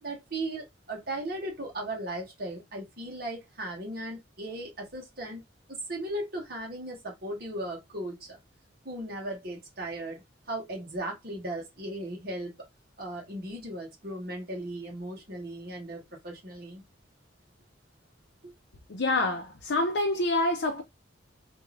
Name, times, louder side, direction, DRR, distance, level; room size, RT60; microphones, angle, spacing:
voice 1, 0.0-5.4 5.7-8.4 8.8-10.2 10.5-12.5 13.0-16.8 18.4-18.5, right 1 dB, 50° right, 1.3 m, -37 dB
voice 2, 18.9-20.8, left 2 dB, 65° left, 0.6 m, -27 dB
3.4 x 2.6 x 3.2 m
head